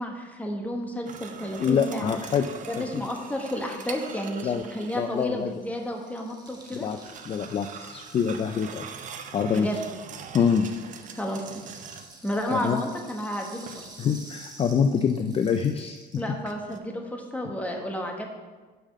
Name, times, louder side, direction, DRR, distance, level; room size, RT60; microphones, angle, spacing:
voice 1, 0.0-2.2 2.7-6.9 9.5-9.8 11.1-11.8 12.2-13.9 16.2-18.3, equal, 10° left, 1 dB, 1.2 m, -32 dB
sound 1, 1.1-5.3 6.5-12.3 13.7-14.2 16.5-16.8, right 7 dB, 50° right, 0.6 m, -43 dB
voice 2, 1.6-2.4 2.8-2.9 4.4-4.6 4.9-5.5 6.8-7.0 7.3-8.9 9.3-9.7 10.3-10.7 12.5-12.8 14.0-16.2 17.4-17.5, left 7 dB, 35° left, 7 dB, 0.4 m, -25 dB
Rattle (instrument), 3.1-10.2 10.5-16.3, right 2 dB, 25° right, 1.3 m, -50 dB
5.6 x 5.0 x 6.3 m, 1.3 s
cardioid pair, 110°, 17 cm